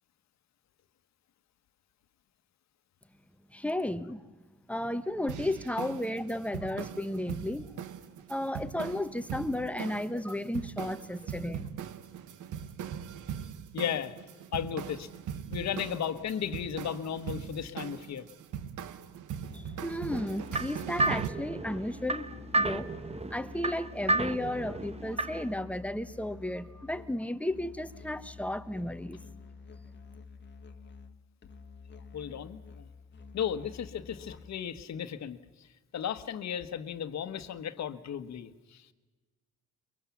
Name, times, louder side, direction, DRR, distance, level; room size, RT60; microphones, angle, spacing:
voice 1, 3.5-4.2 4.7-7.8 8.3-11.7 19.5-22.3 22.5-22.9 23.3-29.2, left 1 dB, 5° left, 1.0 m, -34 dB
sound 1, 5.3-21.3, right 8 dB, 80° right, 1.2 m, -40 dB
voice 2, 13.7-14.2 14.5-15.1 15.5-18.2 32.1-32.9 33.3-35.7 35.9-38.9, left 8 dB, 60° left, 1.4 m, -35 dB
Musical instrument, 19.4-34.7, left 5 dB, 35° left, 1.4 m, -49 dB
sound 2, 20.1-25.5, right 2 dB, 20° right, 1.0 m, -32 dB
23.0 x 23.0 x 7.2 m
cardioid pair, 90°, 30 cm